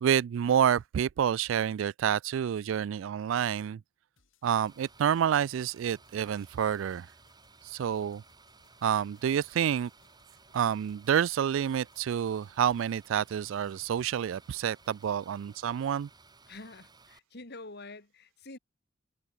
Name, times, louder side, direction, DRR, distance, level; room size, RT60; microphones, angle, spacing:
voice 1, 0.0-3.8 4.4-7.1 7.6-8.2 8.8-9.9 10.5-16.1, right 9 dB, 70° right, 0.3 m, -28 dB
sound 1, 4.2-15.2, left 3 dB, 80° left, 5.2 m, -69 dB
sound 2, 4.4-17.2, right 3 dB, 20° right, 6.5 m, -58 dB
voice 2, 16.5-18.6, left 2 dB, 55° left, 3.1 m, -46 dB
head